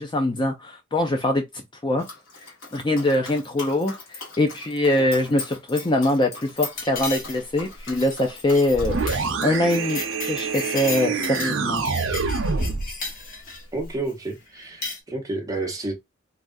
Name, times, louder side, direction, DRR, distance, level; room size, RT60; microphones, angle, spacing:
voice 1, 0.0-2.0 2.7-9.0 9.4-11.8, left 1 dB, 20° left, 0.4 m, -23 dB
Dog, 2.0-13.1 13.4-14.4, left 3 dB, 65° left, 1.4 m, -42 dB
sound 1, 6.8-7.6 7.8-8.1 8.5-8.8 9.1-9.3 9.5-11.6 11.8-13.6 14.6-15.0, left 3 dB, 40° left, 0.9 m, -34 dB
sound 2, 8.7-12.9, right 4 dB, 70° right, 0.6 m, -26 dB
voice 2, 13.7-15.9, right 2 dB, 15° right, 0.9 m, -30 dB
3.3 x 2.4 x 2.5 m
head